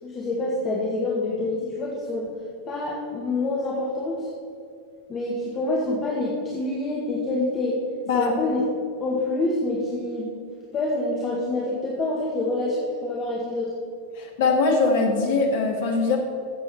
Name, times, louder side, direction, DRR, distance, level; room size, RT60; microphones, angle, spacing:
voice 1, 0.0-2.4 2.6-4.3 5.1-7.8 8.1-8.6 9.0-10.3 10.7-13.7, left 2 dB, 25° left, -4 dB, 1.9 m, -26 dB
voice 2, 14.2-16.2, left 4 dB, 55° left, 2 dB, 2.0 m, -21 dB
14.5 x 7.7 x 4.5 m, 2.4 s
figure-of-eight pair, 90°, 0 cm